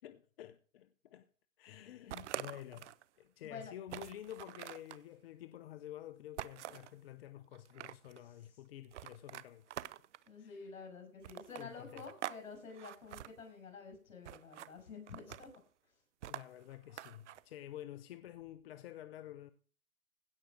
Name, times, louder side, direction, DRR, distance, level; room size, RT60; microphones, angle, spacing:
voice 1, 0.0-1.3 1.6-9.8 10.4-10.8 11.5-12.1 16.3-19.5, left 12 dB, 45° left, 0.8 m, -50 dB
sound 1, 2.1-3.0 3.4-3.5 3.9-5.0 6.4-6.9 7.5-8.2 8.9-10.3 11.2-12.4 12.7-13.3 14.2-14.7 15.1-15.6 16.2-17.4, right 12 dB, 60° right, 0.7 m, -46 dB
voice 2, 3.4-3.7 10.3-15.5, left 5 dB, 70° left, 6.4 m, -49 dB
16.5 x 6.4 x 6.1 m
hypercardioid pair, 140°, 41 cm